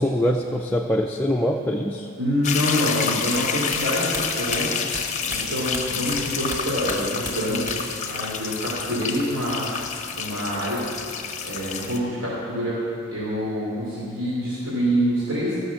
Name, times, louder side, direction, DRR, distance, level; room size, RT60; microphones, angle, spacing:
voice 1, 0.0-2.1, equal, 10° left, 0 dB, 0.4 m, -23 dB
voice 2, 2.2-4.7 5.2-7.7 8.0-9.6 10.1-10.8 11.4-12.8 13.1-15.6, equal, 60° right, -8 dB, 2.8 m, -26 dB
sound 1, 2.4-12.0, left 6 dB, 35° left, 0.7 m, -29 dB
sound 2, 3.3-6.2 6.5-8.0 8.2-9.0, left 1 dB, 15° right, 1.7 m, -35 dB
14.0 x 6.2 x 7.0 m, 2.6 s
head